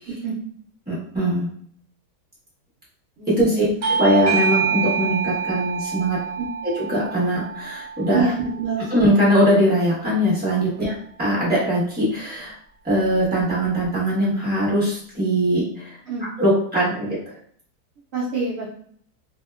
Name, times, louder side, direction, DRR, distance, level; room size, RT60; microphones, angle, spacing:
voice 1, 0.9-1.5 3.3-3.6 3.9-6.2 6.7-8.2 8.9-10.9 11.2-12.5 12.8-16.0 16.4-17.1, equal, 10° right, -8 dB, 0.8 m, -21 dB
voice 2, 3.2-3.7 6.4-6.5 8.1-8.9 16.1-16.2 18.1-18.7, right 4 dB, 80° right, -6 dB, 0.5 m, -26 dB
Bell / Doorbell, 3.8-9.0, right 6 dB, 65° right, 1.1 m, -26 dB
2.8 x 2.1 x 2.2 m, 0.63 s
omnidirectional pair, 1.7 m